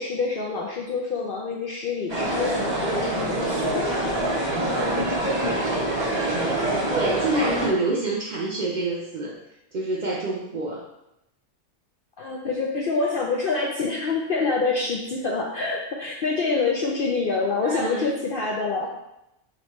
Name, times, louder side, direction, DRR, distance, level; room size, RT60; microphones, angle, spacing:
voice 1, 0.0-4.0 12.2-18.9, left 4 dB, 70° left, -2 dB, 0.5 m, -26 dB
sound 1, 2.1-7.7, right 1 dB, 25° right, 0.8 m, -25 dB
voice 2, 6.9-9.4 9.7-10.8 17.6-18.0, right 2 dB, 70° right, -4 dB, 0.4 m, -27 dB
4.8 x 3.0 x 3.0 m, 0.86 s
omnidirectional pair, 1.5 m